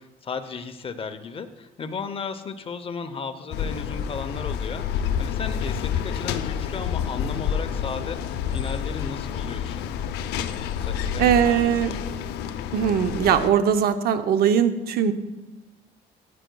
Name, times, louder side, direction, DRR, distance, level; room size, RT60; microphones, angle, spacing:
voice 1, 0.0-8.2 8.5-9.9 10.8-12.2, left 5 dB, 35° left, 9 dB, 0.7 m, -35 dB
sound 1, 3.5-13.5, left 8 dB, 80° left, 0.6 m, -29 dB
voice 2, 11.2-11.9 12.7-15.1, right 8 dB, 65° right, 10 dB, 0.7 m, -20 dB
14.0 x 9.0 x 2.3 m, 1.0 s
cardioid pair, 110°, 17 cm